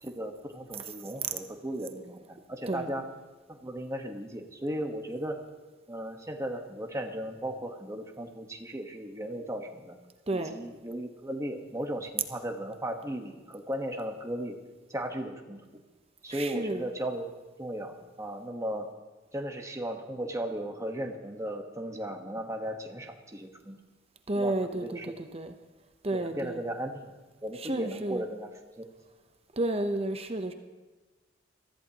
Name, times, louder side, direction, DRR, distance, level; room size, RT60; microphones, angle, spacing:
voice 1, 0.0-3.0 3.5-5.4 5.9-10.0 10.3-14.6 14.9-15.6 16.2-17.2 17.6-18.9 19.3-23.8 24.3-25.1 26.1-27.1 27.4-28.5 28.8-28.9, right 1 dB, 15° right, 3 dB, 1.3 m, -36 dB
voice 2, 16.3-16.8 24.3-25.5 26.0-26.6 27.6-28.2 29.5-30.5, right 2 dB, 30° right, 7 dB, 0.8 m, -31 dB
23.0 x 14.0 x 3.0 m, 1.2 s
head